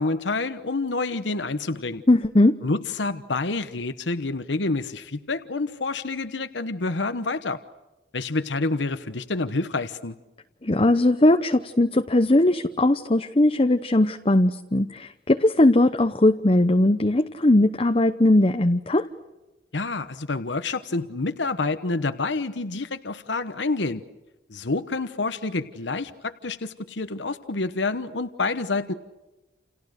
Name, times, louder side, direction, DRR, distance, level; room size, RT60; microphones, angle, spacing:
voice 1, 0.0-2.0 2.6-7.6 8.1-10.2 19.7-24.0 24.5-28.9, left 3 dB, 75° left, 11 dB, 1.1 m, -28 dB
voice 2, 2.1-2.5 10.6-19.0, left 1 dB, 30° left, 7 dB, 0.8 m, -19 dB
30.0 x 29.0 x 6.6 m, 1.1 s
head